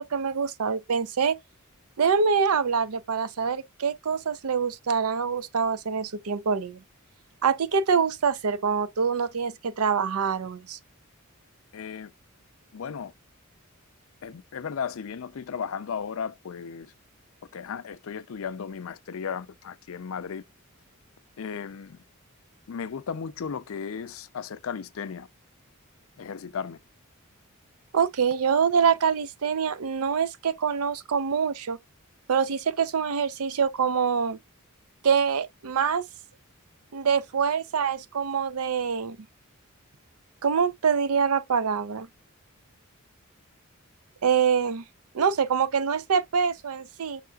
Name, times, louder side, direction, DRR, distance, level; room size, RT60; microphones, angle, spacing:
voice 1, 0.0-1.4 2.0-6.8 7.4-10.8 27.9-31.8 32.3-34.4 35.0-36.1 36.9-39.2 40.4-42.1 44.2-44.8 45.1-47.2, right 6 dB, 75° right, 0.5 m, -25 dB
voice 2, 11.7-12.1 12.7-13.1 14.2-16.9 17.5-20.4 21.4-22.0 22.7-25.3 26.2-26.8, left 6 dB, 65° left, 0.4 m, -35 dB
5.7 x 3.5 x 2.3 m
head